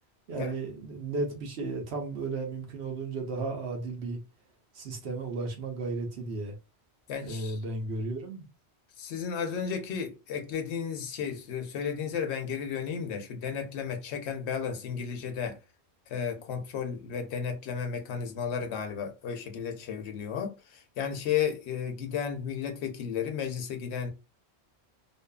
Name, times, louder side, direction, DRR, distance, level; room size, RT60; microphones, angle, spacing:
voice 1, 0.3-4.2 4.7-6.5 7.2-8.5, right 3 dB, 75° right, 1.0 m, -34 dB
voice 2, 7.1-7.6 9.0-15.6 16.1-24.1, left 7 dB, 80° left, 0.9 m, -33 dB
2.6 x 2.4 x 2.2 m
omnidirectional pair, 1.1 m